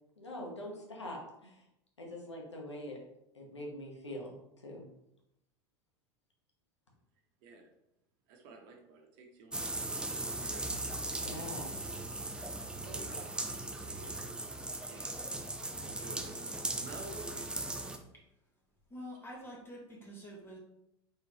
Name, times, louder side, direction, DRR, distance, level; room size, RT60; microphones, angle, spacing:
voice 1, 0.2-1.6 2.0-3.0 3.3-4.8 11.2-12.0, left 1 dB, 90° left, -1 dB, 0.9 m, -44 dB
voice 2, 8.3-10.6 12.8-14.4 14.9-15.2 15.7-17.9, right 3 dB, 55° right, 2 dB, 0.9 m, -52 dB
sound 1, 9.5-18.0, right 2 dB, 5° right, 0.4 m, -38 dB
voice 3, 18.9-20.6, equal, 15° left, -3 dB, 1.2 m, -47 dB
3.8 x 3.3 x 2.8 m, 0.85 s
figure-of-eight pair, 80°, 14 cm